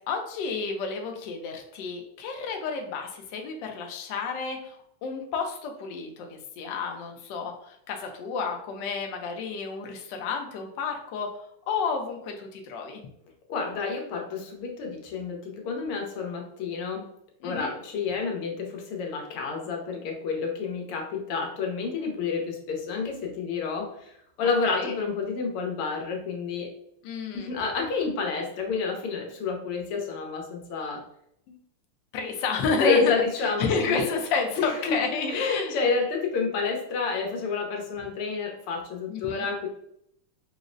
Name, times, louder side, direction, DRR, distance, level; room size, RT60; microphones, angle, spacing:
voice 1, 0.1-11.3 11.7-13.0 17.4-17.7 24.7-24.9 27.0-27.5 31.5-31.6 32.1-33.1 33.4-35.8 39.1-39.5, left 4 dB, 75° left, 3 dB, 1.1 m, -31 dB
voice 2, 13.5-17.0 17.4-26.7 27.3-31.0 32.8-34.1 34.6-35.0 35.3-39.7, left 4 dB, 90° left, 1 dB, 1.7 m, -29 dB
4.9 x 2.0 x 2.5 m, 0.73 s
omnidirectional pair, 2.4 m